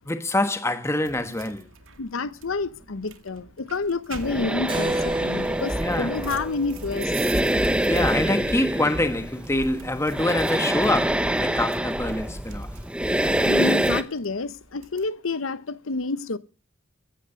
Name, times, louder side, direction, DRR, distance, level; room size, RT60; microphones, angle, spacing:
voice 1, 0.1-1.7 5.8-6.1 7.9-12.7, left 1 dB, 15° left, 1.3 m, -25 dB
sound 1, 1.0-15.1, right 6 dB, 75° right, 2.1 m, -46 dB
voice 2, 2.0-7.1 13.4-16.4, left 3 dB, 85° left, 0.9 m, -29 dB
sound 2, 4.1-14.0, right 1 dB, 5° right, 0.9 m, -25 dB
Keyboard (musical), 4.7-8.8, right 2 dB, 25° right, 1.1 m, -33 dB
15.5 x 9.7 x 6.8 m
head